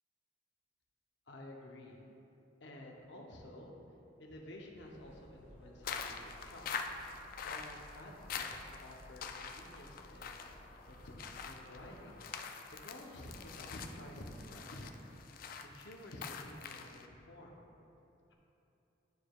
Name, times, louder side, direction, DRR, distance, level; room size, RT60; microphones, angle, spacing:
voice 1, 1.3-2.0 2.6-3.8 4.2-6.7 7.4-10.4 10.9-11.1 11.5-12.2 12.7-14.9 15.6-17.6, left 1 dB, 65° left, 0 dB, 0.7 m, -51 dB
sound 1, 4.7-12.0, equal, 25° left, 1.5 m, -58 dB
sound 2, 5.8-17.1, left 6 dB, 45° left, 0.3 m, -45 dB
11.0 x 4.8 x 2.3 m, 2.9 s
head